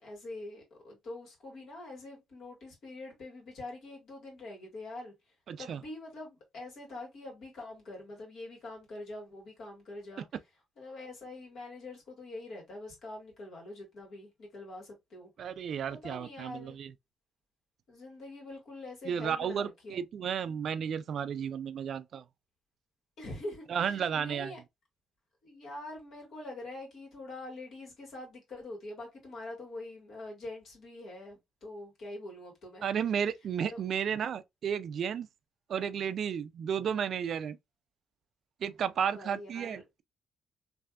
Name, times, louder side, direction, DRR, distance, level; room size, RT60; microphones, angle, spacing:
voice 1, 0.0-5.1 5.6-10.3 10.8-15.3 15.9-16.8 17.9-20.0 23.2-24.6 25.4-32.9 33.7-33.8 39.1-39.8, left 2 dB, 65° left, 1.9 m, -44 dB
voice 2, 5.5-5.8 15.4-16.9 19.1-22.2 23.7-24.5 32.8-35.3 35.7-37.6 38.6-40.0, right 8 dB, 60° right, 0.3 m, -33 dB
3.3 x 2.6 x 2.4 m
cardioid pair, 90°, 0 cm